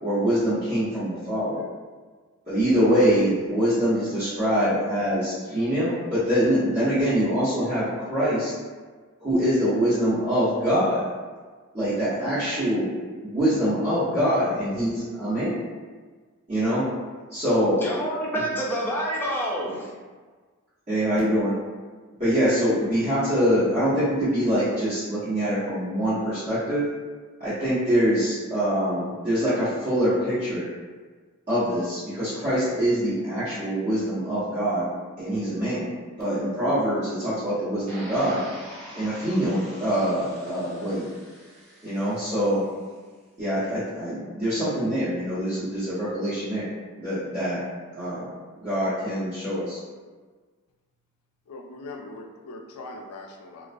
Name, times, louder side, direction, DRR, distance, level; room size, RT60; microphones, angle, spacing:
voice 1, 0.0-1.6 2.5-8.5 9.2-11.0 11.7-12.9 13.2-15.6 16.5-16.9 17.3-17.8 20.9-21.5 22.2-26.9 27.4-30.6 31.5-34.9 35.2-35.9 36.2-38.4 38.9-41.1 41.8-42.6 43.4-46.7 47.0-47.6 47.9-48.3 48.6-49.8, equal, 35° right, -16 dB, 1.0 m, -24 dB
voice 2, 17.8-19.9, equal, 10° left, -5 dB, 0.4 m, -27 dB
sound 1, 37.9-42.9, equal, 75° right, 1.3 m, -44 dB
voice 3, 51.5-53.7, left 2 dB, 80° left, 2 dB, 0.4 m, -41 dB
2.3 x 2.1 x 2.5 m, 1.4 s
head